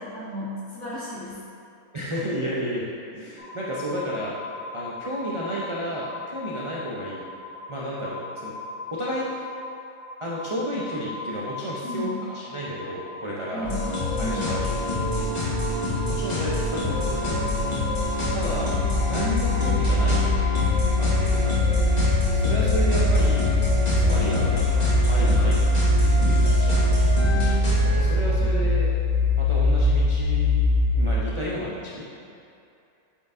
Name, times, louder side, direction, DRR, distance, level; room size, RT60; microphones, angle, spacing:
voice 1, 0.0-1.4 11.8-12.2 13.5-13.8 14.2-14.5, left 1 dB, 55° left, -9 dB, 2.0 m, -33 dB
voice 2, 1.9-2.8 3.1-4.3 4.7-7.2 7.7-8.5 8.9-9.5 10.2-13.7 14.2-14.8 15.1-17.5 18.3-18.7 19.0-20.2 21.0-21.8 22.3-23.5 24.0-25.6 26.0-27.0 28.0-28.9 29.4-30.6 30.9-32.2, equal, 50° right, -7 dB, 0.3 m, -32 dB
sound 1, 3.4-20.7, left 3 dB, 85° left, 1.4 m, -37 dB
sound 2, 13.6-28.0, left 2 dB, 30° left, 1.3 m, -27 dB
sound 3, 16.5-31.4, left 1 dB, 80° right, 1.3 m, -22 dB
8.3 x 4.6 x 2.6 m, 2.6 s
omnidirectional pair, 1.6 m